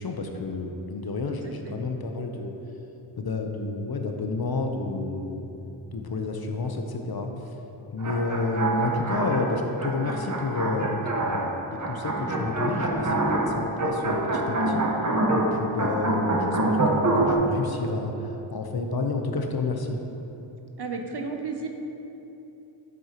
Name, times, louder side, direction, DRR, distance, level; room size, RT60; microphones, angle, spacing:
voice 1, 0.0-2.5 3.2-5.5 5.9-7.3 7.9-14.8 15.3-20.0, left 3 dB, 50° left, 4 dB, 0.9 m, -30 dB
voice 2, 1.4-1.8 20.8-21.7, right 4 dB, 55° right, 4 dB, 1.0 m, -33 dB
sound 1, 8.0-17.3, right 2 dB, 35° right, 1.2 m, -26 dB
sound 2, 12.2-14.2, right 2 dB, 5° right, 0.3 m, -35 dB
9.8 x 7.3 x 3.0 m, 2.9 s
cardioid pair, 40°, 48 cm